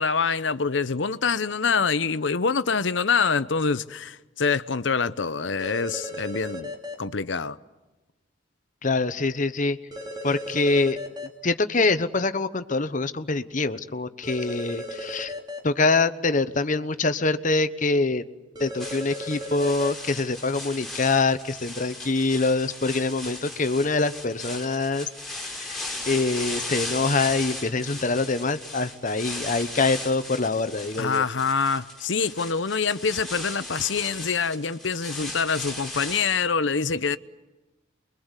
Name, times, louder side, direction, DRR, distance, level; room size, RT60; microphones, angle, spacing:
voice 1, 0.0-6.7 7.0-7.6 31.0-37.2, left 5 dB, 70° left, 0.8 m, -25 dB
sound 1, 5.6-6.9 9.9-11.3 14.2-15.6 18.5-19.9, equal, 20° right, 3.4 m, -35 dB
voice 2, 8.8-9.8 10.2-11.0 11.4-15.3 15.6-18.2 18.6-31.2, left 3 dB, 40° left, 1.0 m, -25 dB
sound 2, 18.8-36.3, left 2 dB, ahead, 5.6 m, -37 dB
29.0 x 22.5 x 8.2 m
head